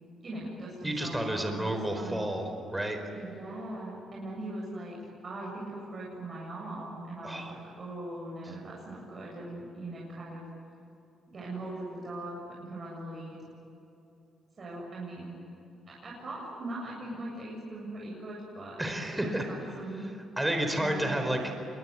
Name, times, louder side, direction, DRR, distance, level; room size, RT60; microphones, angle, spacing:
voice 1, 0.2-2.3 3.1-5.0 5.2-10.4 11.3-13.4 14.6-15.4 15.9-20.1 20.7-21.4, right 2 dB, 40° right, -4 dB, 7.7 m, -40 dB
voice 2, 0.8-3.0 7.2-7.6 18.8-19.5 20.4-21.4, right 1 dB, 10° right, 5 dB, 4.5 m, -31 dB
27.0 x 22.5 x 9.7 m, 2.8 s
cardioid pair, 90°, 0 cm